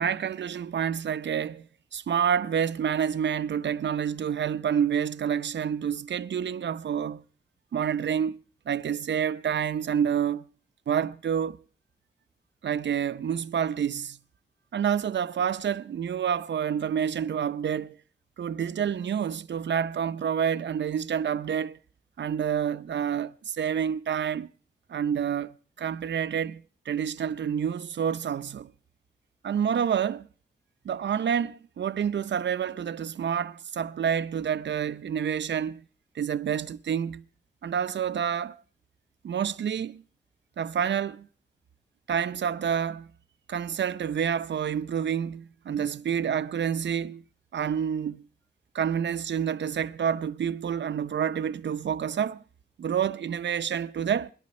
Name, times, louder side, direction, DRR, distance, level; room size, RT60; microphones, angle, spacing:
voice 1, 0.0-1.7 1.9-7.2 7.7-8.4 8.7-10.5 10.9-11.6 12.6-14.2 14.7-18.0 18.4-21.8 22.2-24.5 24.9-28.7 29.4-30.3 30.8-35.8 36.1-37.2 37.6-38.6 39.2-40.0 40.6-41.3 42.1-43.1 43.5-47.2 47.5-48.2 48.7-52.4 52.8-54.3, right 8 dB, 90° right, 0.7 m, -28 dB
26.5 x 11.5 x 4.3 m
wide cardioid pair, 130°, 18 cm